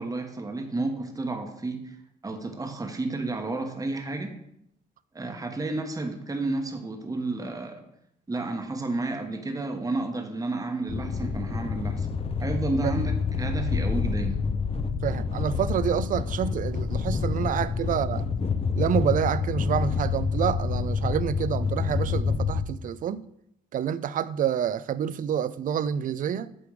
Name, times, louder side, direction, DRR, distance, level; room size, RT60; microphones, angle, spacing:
voice 1, 0.0-2.0 2.2-4.3 5.1-7.8 8.3-12.1 12.4-14.4, right 2 dB, 20° right, 1.1 m, -31 dB
sound 1, 10.9-22.7, left 5 dB, 30° left, 0.6 m, -28 dB
voice 2, 15.0-18.2 18.8-23.2 23.7-26.5, right 9 dB, 50° right, 0.4 m, -28 dB
8.5 x 3.4 x 4.7 m
supercardioid pair, 65°, 18 cm